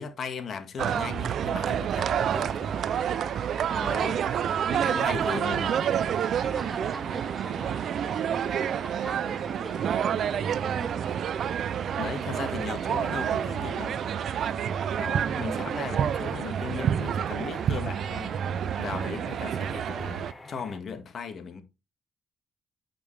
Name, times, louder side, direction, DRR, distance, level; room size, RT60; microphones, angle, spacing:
voice 1, 0.0-2.8 3.8-4.2 4.7-5.7 11.9-14.0 14.9-18.4 18.8-21.6, left 5 dB, 55° left, 1.6 m, -37 dB
sound 1, 0.8-20.3, right 9 dB, 65° right, 0.4 m, -28 dB
sound 2, 2.3-20.8, left 2 dB, 20° left, 1.3 m, -47 dB
voice 2, 3.7-11.1 15.2-16.0, right 2 dB, 15° right, 0.6 m, -42 dB
8.5 x 5.1 x 3.3 m
cardioid pair, 90°, 0 cm